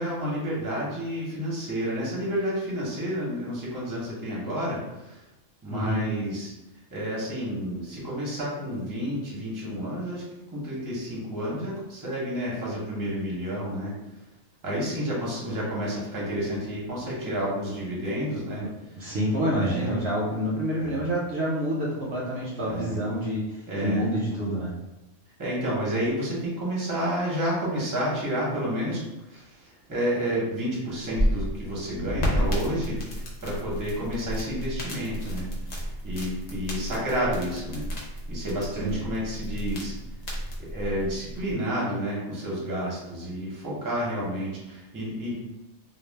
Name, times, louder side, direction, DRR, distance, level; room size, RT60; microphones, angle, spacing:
voice 1, 0.0-5.2 5.6-6.5 6.9-10.2 10.5-13.9 14.6-18.6 19.3-19.9 20.8-21.0 22.6-23.0 23.7-24.0 25.4-29.0 29.3-37.9 38.3-39.9 40.6-45.3, equal, 20° right, -5 dB, 0.6 m, -30 dB
voice 2, 5.7-6.0 18.6-18.7 18.9-24.7 38.8-39.0, equal, 65° right, -4 dB, 0.8 m, -28 dB
sound 1, 30.9-41.5, equal, 65° left, 0.9 m, -32 dB
2.3 x 2.2 x 3.3 m, 1.0 s
omnidirectional pair, 1.3 m